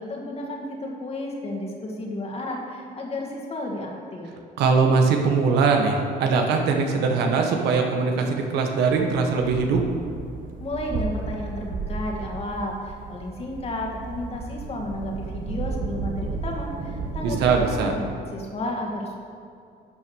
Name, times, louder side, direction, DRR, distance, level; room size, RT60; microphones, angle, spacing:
voice 1, 0.0-4.3 10.6-19.1, left 1 dB, 35° left, 0 dB, 2.2 m, -32 dB
voice 2, 4.6-9.8 17.2-17.9, right 4 dB, 80° right, 3 dB, 1.4 m, -21 dB
sound 1, 8.9-17.8, right 4 dB, 55° right, 1.1 m, -33 dB
11.5 x 6.1 x 6.4 m, 2.4 s
cardioid pair, 110°, 17 cm